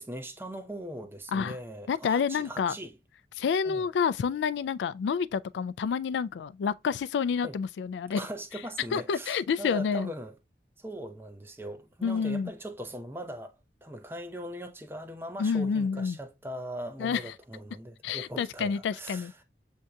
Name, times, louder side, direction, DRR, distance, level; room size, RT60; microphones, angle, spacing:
voice 1, 0.0-3.0 3.6-3.9 7.4-7.6 8.1-10.4 10.8-13.5 13.8-19.4, right 1 dB, 15° right, 0.6 m, -40 dB
voice 2, 1.9-2.8 3.4-8.2 8.9-10.1 12.0-12.5 15.4-16.2 17.0-17.2 18.0-19.3, left 6 dB, 85° left, 0.3 m, -28 dB
7.5 x 2.7 x 2.3 m
head